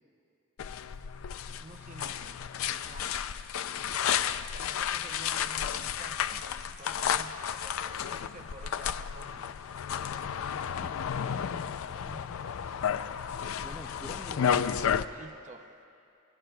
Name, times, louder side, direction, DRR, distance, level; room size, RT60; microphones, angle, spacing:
sound 1, 0.6-15.1, left 8 dB, 85° left, 0.4 m, -32 dB
voice 1, 1.6-3.1 4.5-6.5 6.8-9.5 10.5-10.6 11.4-12.9 15.1-15.7, right 3 dB, 35° right, 6 dB, 0.6 m, -51 dB
voice 2, 13.3-14.7, left 1 dB, 5° left, 5 dB, 0.4 m, -49 dB
26.5 x 18.5 x 2.3 m, 2.6 s
head